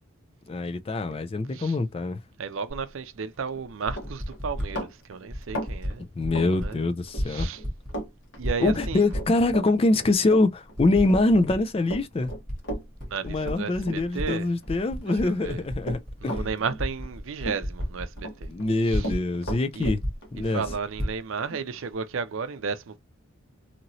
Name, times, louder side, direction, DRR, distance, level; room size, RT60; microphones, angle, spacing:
voice 1, 0.5-2.2 6.2-7.5 8.6-12.3 13.2-16.5 18.5-20.0 20.3-20.6, left 2 dB, 25° left, 0.3 m, -24 dB
voice 2, 2.4-6.0 6.6-6.8 7.2-7.6 8.4-9.1 13.1-14.5 15.2-15.6 16.2-18.5 18.9-19.1 19.7-19.9 20.4-23.0, right 5 dB, 65° right, 0.5 m, -33 dB
Typing, 2.7-2.8 3.7-4.7 5.3-5.9 6.2-6.7 7.0-8.1 8.4-9.6 10.1-10.2 10.8-11.6 11.9-14.3 14.6-19.2 19.5-19.6 19.8-21.2, equal, 5° left, 1.3 m, -32 dB
Run, 3.5-3.6 3.9-7.2 7.5-8.1 8.3-14.7 15.0-17.1 17.4-18.3 18.6-21.9, right 1 dB, 55° left, 1.4 m, -36 dB
2.9 x 2.8 x 2.7 m
head